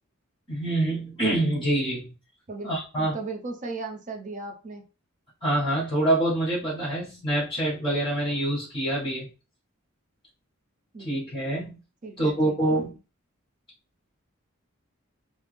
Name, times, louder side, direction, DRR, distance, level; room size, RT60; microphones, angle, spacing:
voice 1, 0.5-2.1 2.6-3.1 5.4-9.3 11.0-11.7 12.2-13.0, right 1 dB, 25° left, -9 dB, 1.4 m, -26 dB
voice 2, 2.5-4.8 10.9-11.1 12.0-12.9, right 3 dB, 35° right, 3 dB, 0.6 m, -37 dB
3.4 x 2.0 x 3.2 m, 0.33 s
head